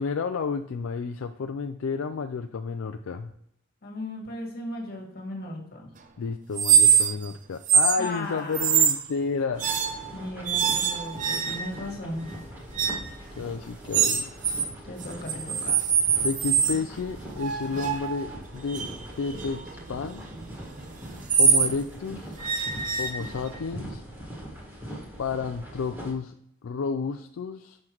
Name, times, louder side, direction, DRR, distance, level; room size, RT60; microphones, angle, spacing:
voice 1, 0.0-3.3 6.2-9.6 13.4-14.3 16.2-18.8 19.2-20.2 21.4-22.4 23.0-24.0 25.2-26.3 26.6-27.8, left 5 dB, 70° left, 6 dB, 0.4 m, -31 dB
voice 2, 3.8-5.9 8.0-8.9 10.1-12.3 14.8-15.8, left 1 dB, 45° left, 0 dB, 1.7 m, -36 dB
sound 1, 6.6-7.3 7.6-8.0 8.5-9.1 9.6-10.1 10.5-11.8 12.8-13.1 13.9-14.7 15.0-16.8 17.4-21.7 22.4-23.6, right 7 dB, 40° right, 0.6 m, -24 dB
sound 2, 9.5-26.1, equal, 10° right, 1.6 m, -42 dB
6.5 x 5.7 x 3.0 m, 0.71 s
head